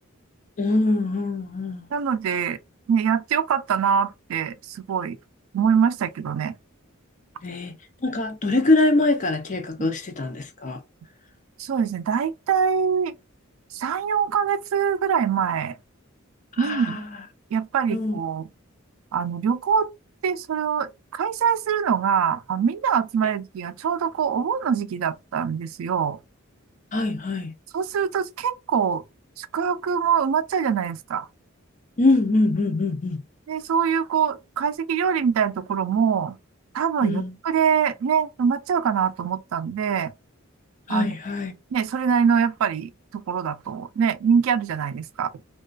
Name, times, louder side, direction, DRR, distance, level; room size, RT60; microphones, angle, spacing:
voice 1, 0.6-1.9 7.4-7.7 8.0-10.8 16.6-17.1 17.9-18.2 26.9-27.5 32.0-33.2 37.0-37.3 40.9-41.5, left 2 dB, 35° left, 0.5 m, -23 dB
voice 2, 1.9-2.6 2.9-5.2 5.5-6.6 9.8-9.9 11.6-13.1 13.7-15.8 16.6-17.0 17.5-18.5 19.1-19.9 20.2-26.2 27.7-29.0 29.4-31.3 33.5-36.4 36.7-40.1 40.9-41.1 41.7-45.3, right 7 dB, 80° right, 0.3 m, -24 dB
2.3 x 2.2 x 2.3 m
head